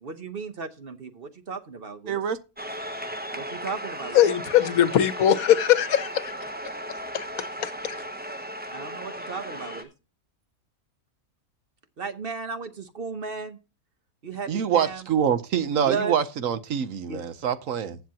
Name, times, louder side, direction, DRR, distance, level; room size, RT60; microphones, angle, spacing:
voice 1, 0.0-2.2 3.3-4.2 8.7-9.9 12.0-13.6 14.2-15.1 15.8-16.1 17.1-17.2, right 4 dB, 45° right, 0.9 m, -35 dB
voice 2, 2.1-2.4 14.5-18.0, right 8 dB, 65° right, 1.1 m, -25 dB
sound 1, 2.6-9.8, equal, 15° right, 0.3 m, -36 dB
voice 3, 4.1-6.3 7.1-8.0, left 11 dB, 75° left, 1.2 m, -21 dB
15.0 x 7.1 x 2.8 m
omnidirectional pair, 1.5 m